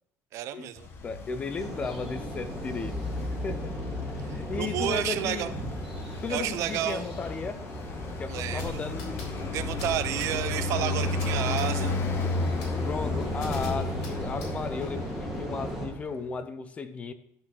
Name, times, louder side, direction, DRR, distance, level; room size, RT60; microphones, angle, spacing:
voice 1, 0.3-0.9 4.3-5.5 6.3-7.1 8.3-8.8 9.5-12.0, right 12 dB, 55° right, 12 dB, 0.5 m, -31 dB
Traffic noise roadway noise, 0.8-16.2, left 3 dB, 40° left, 1.0 m, -34 dB
voice 2, 1.0-3.7 4.2-5.6 6.2-7.6 8.2-9.4 12.8-17.1, left 5 dB, 20° left, 11 dB, 0.5 m, -35 dB
sound 1, 1.6-15.9, equal, ahead, 2.0 m, -37 dB
sound 2, 8.6-15.0, left 4 dB, 75° left, 3.6 m, -40 dB
11.0 x 4.1 x 6.1 m, 0.74 s
cardioid pair, 170°, 6 cm